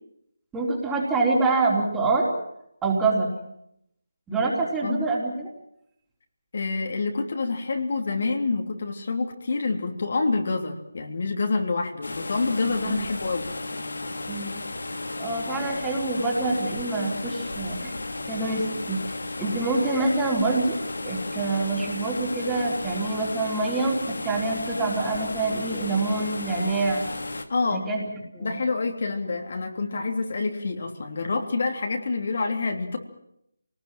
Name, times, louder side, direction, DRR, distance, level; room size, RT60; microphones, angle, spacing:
voice 1, 0.5-2.3 2.8-3.3 4.3-5.5 12.7-13.1 14.3-14.6 15.2-17.9 18.3-19.0 19.4-20.8 21.0-27.0 27.7-28.0 28.3-28.6, right 3 dB, 10° right, -3 dB, 4.1 m, -26 dB
voice 2, 6.5-13.5 27.5-27.9 28.4-33.0, left 3 dB, 55° left, 3 dB, 3.4 m, -27 dB
sound 1, 12.0-27.4, left 2 dB, 80° left, 2.5 m, -34 dB
25.0 x 19.5 x 7.7 m, 0.77 s
figure-of-eight pair, 165°, 0 cm